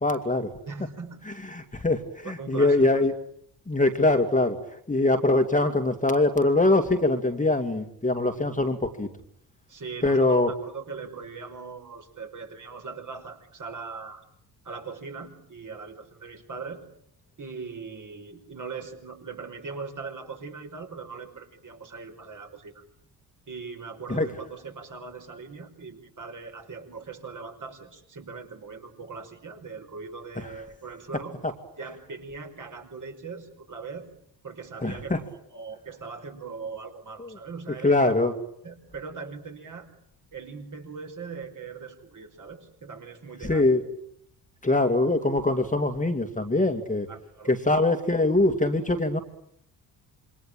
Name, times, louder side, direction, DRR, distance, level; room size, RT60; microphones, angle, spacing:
voice 1, 0.0-0.5 1.3-3.1 3.7-4.6 4.9-9.1 10.0-10.5 24.1-24.3 30.4-30.5 31.4-31.5 34.8-35.2 37.2-37.3 37.8-38.3 43.4-43.8 44.6-47.1 47.5-49.2, left 2 dB, 15° left, 6 dB, 2.4 m, -23 dB
voice 2, 0.7-1.2 2.2-3.0 9.7-14.2 14.6-16.8 17.4-22.8 23.5-31.4 31.8-34.1 34.4-38.1 38.6-39.9 40.3-43.7 47.1-47.5, right 5 dB, 40° right, 4 dB, 5.4 m, -40 dB
27.5 x 23.5 x 8.9 m, 0.69 s
figure-of-eight pair, 45°, 49 cm